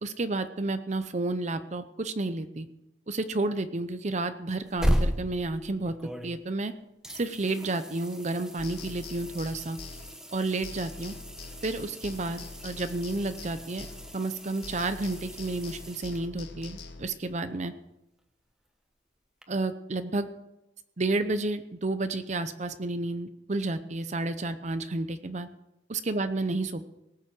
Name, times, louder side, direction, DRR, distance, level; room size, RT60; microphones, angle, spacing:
voice 1, 0.0-2.7 3.1-6.0 6.2-6.7 7.1-9.8 10.3-11.2 11.6-13.9 14.1-17.7 19.5-20.3 21.0-25.5 25.9-26.9, right 2 dB, 40° right, 11 dB, 0.7 m, -31 dB
sound 1, 4.5-6.7 7.0-16.6 19.4-19.5, equal, 5° right, 1.1 m, -36 dB
sound 2, 8.6-14.4 14.6-17.0, left 3 dB, 60° left, 1.7 m, -44 dB
18.5 x 7.4 x 7.6 m, 0.91 s
head